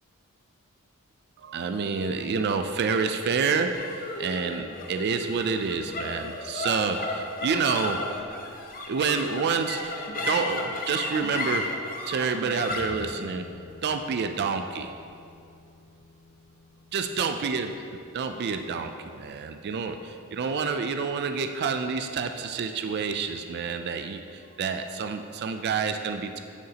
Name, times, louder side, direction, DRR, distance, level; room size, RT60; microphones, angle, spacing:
voice 1, 1.4-8.1 8.9-13.5 13.8-14.9 16.9-26.4, right 5 dB, 50° right, 7 dB, 0.4 m, -28 dB
sound 1, 3.7-20.3, left 2 dB, 40° left, 0.7 m, -36 dB
10.5 x 6.7 x 2.8 m, 2.5 s
head